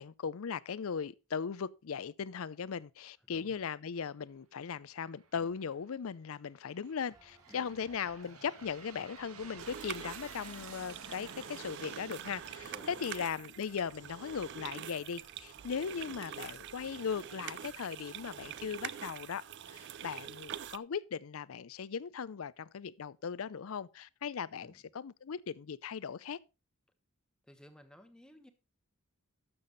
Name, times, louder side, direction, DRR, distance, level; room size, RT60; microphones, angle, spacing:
voice 1, 0.0-26.4, left 6 dB, 70° left, 0.5 m, -38 dB
voice 2, 3.3-3.6 5.3-5.6 7.5-7.8 12.6-13.1 24.6-24.8 27.4-28.5, equal, 5° left, 1.0 m, -56 dB
Aircraft, 5.1-5.7 6.4-13.9, right 5 dB, 85° right, 1.6 m, -52 dB
sound 1, 7.1-19.1, right 2 dB, 15° right, 0.8 m, -64 dB
sound 2, 9.6-20.8, right 10 dB, 55° right, 0.4 m, -45 dB
12.5 x 7.0 x 3.9 m
head